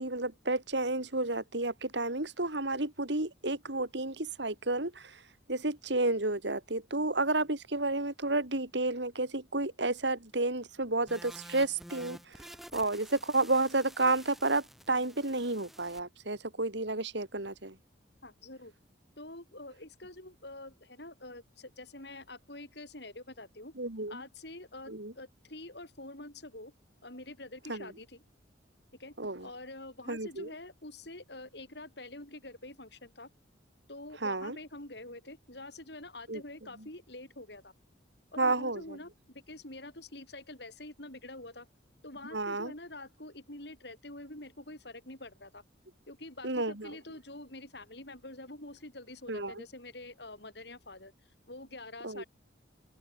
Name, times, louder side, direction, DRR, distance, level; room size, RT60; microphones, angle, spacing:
voice 1, 0.0-4.9 5.5-12.2 12.7-17.7 23.8-24.2 24.9-25.1 27.7-27.9 29.2-29.4 30.1-30.5 34.2-34.6 36.3-36.4 38.4-38.8 42.3-42.7 46.4-46.9 49.3-49.5 52.0-52.2, right 2 dB, 65° right, 3.2 m, -31 dB
sound 1, 11.1-16.0, equal, ahead, 3.6 m, -50 dB
voice 2, 18.2-18.7 19.2-23.7 24.1-26.7 27.0-28.2 29.0-29.1 29.4-33.3 33.9-37.7 38.3-41.7 42.0-45.6 46.1-51.1 51.5-52.2, left 2 dB, 60° left, 6.1 m, -46 dB
head